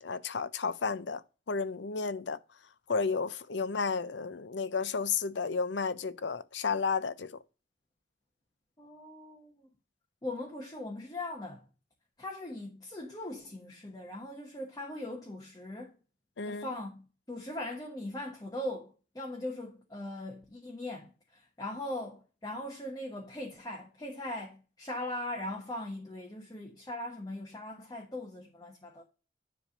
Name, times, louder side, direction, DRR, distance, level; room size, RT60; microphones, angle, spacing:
voice 1, 0.0-1.2 1.5-2.4 2.9-7.3 16.4-16.7, left 5 dB, 70° left, 0.6 m, -32 dB
voice 2, 8.8-9.5 10.2-11.7 12.2-15.9 16.4-29.0, left 1 dB, 20° left, 1.2 m, -40 dB
10.0 x 3.5 x 6.6 m
head